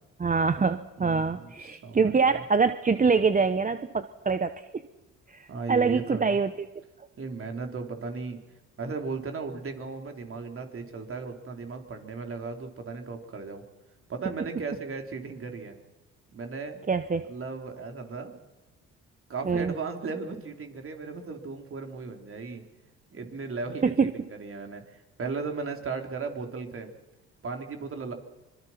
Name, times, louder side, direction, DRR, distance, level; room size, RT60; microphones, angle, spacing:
voice 1, 0.2-4.8 5.3-6.7 16.9-17.3 19.4-19.7 23.8-24.1, right 5 dB, 25° right, 10 dB, 1.0 m, -25 dB
voice 2, 1.0-2.4 5.5-6.4 7.2-8.4 8.8-13.6 14.1-15.8 16.3-16.8 17.2-18.3 19.3-22.6 23.1-26.9 27.4-28.1, right 4 dB, 45° right, 4 dB, 3.9 m, -36 dB
25.5 x 22.5 x 6.0 m, 1.1 s
supercardioid pair, 80°, 31 cm